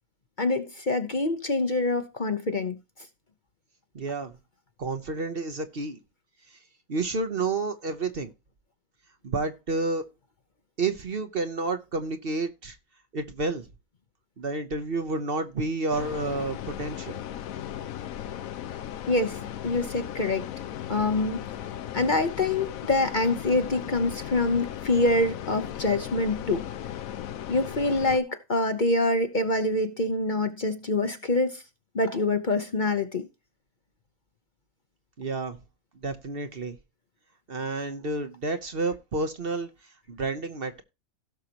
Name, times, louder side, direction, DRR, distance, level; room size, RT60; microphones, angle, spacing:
voice 1, 0.4-2.8 19.1-20.5 20.9-21.4 21.9-26.6 27.5-31.6 31.9-33.3, left 2 dB, 40° left, 0.9 m, -25 dB
voice 2, 3.9-4.3 4.8-6.0 6.9-8.3 9.2-10.0 10.8-12.8 13.1-13.6 14.4-17.1 35.2-35.6 36.0-36.8 37.5-39.7 40.1-40.8, right 3 dB, 45° right, 1.1 m, -30 dB
sound 1, 15.9-28.2, left 11 dB, 80° left, 1.1 m, -37 dB
16.5 x 6.5 x 2.9 m
omnidirectional pair, 1.5 m